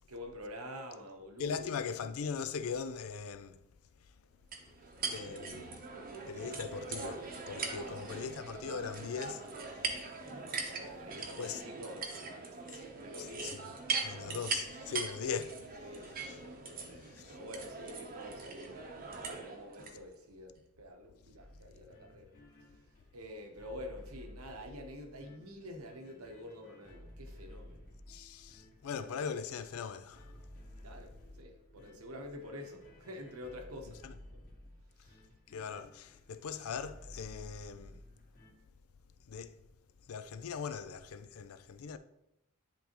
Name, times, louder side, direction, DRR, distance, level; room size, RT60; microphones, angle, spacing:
voice 1, 0.1-2.1 5.1-5.4 7.6-8.2 10.8-12.6 12.9-13.6 15.8-22.3 22.6-22.8 23.1-27.9 30.8-34.0 34.3-34.4 35.0-35.2, left 1 dB, 75° right, 1.0 m, -48 dB
voice 2, 1.4-3.6 5.1-5.7 6.3-9.4 11.4-11.6 13.2-13.7 14.0-15.6 17.2-17.3 28.1-30.2 34.0-34.1 35.5-38.0 39.3-39.5 40.1-42.0, left 6 dB, 70° left, 0.4 m, -40 dB
sound 1, 4.5-19.9, right 4 dB, 40° right, 0.8 m, -41 dB
sound 2, 21.4-38.5, left 1 dB, 40° left, 1.8 m, -55 dB
10.0 x 3.4 x 3.0 m
head